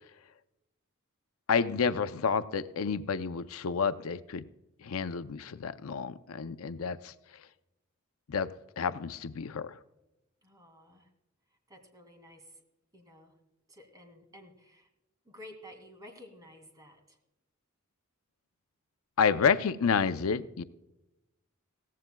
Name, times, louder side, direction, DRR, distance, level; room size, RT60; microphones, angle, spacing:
voice 1, 1.5-4.4 4.8-7.1 8.3-9.8 19.2-20.6, left 6 dB, 80° left, 12 dB, 0.5 m, -30 dB
voice 2, 10.4-11.1 11.7-12.6 12.9-13.4 13.7-14.9 15.2-17.2, left 1 dB, 20° right, 4 dB, 2.2 m, -52 dB
17.0 x 15.0 x 2.3 m, 0.95 s
head